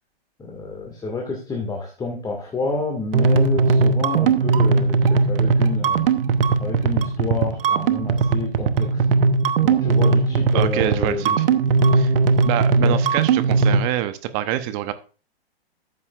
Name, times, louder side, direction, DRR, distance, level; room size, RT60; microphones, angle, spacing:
voice 1, 0.4-6.1 6.6-9.0 9.6-11.6 12.8-13.0, left 3 dB, 15° left, 1 dB, 2.0 m, -29 dB
sound 1, 3.1-13.8, right 4 dB, 65° right, 1.0 m, -19 dB
voice 2, 10.5-11.4 11.9-12.1 12.4-14.9, right 12 dB, 35° right, 11 dB, 0.9 m, -26 dB
13.0 x 8.4 x 2.5 m, 0.36 s
hypercardioid pair, 120°, 30 cm